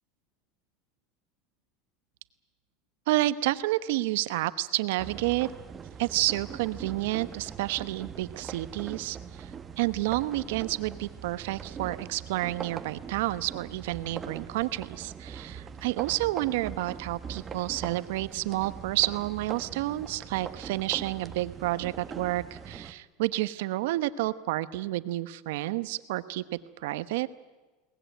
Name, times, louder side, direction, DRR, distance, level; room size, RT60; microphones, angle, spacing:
voice 1, 3.1-5.5 6.0-9.5 9.8-27.3, right 17 dB, 80° right, 14 dB, 1.1 m, -30 dB
sound 1, 5.0-22.9, right 7 dB, 25° right, 1.4 m, -42 dB
22.0 x 19.5 x 9.3 m, 1.2 s
supercardioid pair, 120°, 0 cm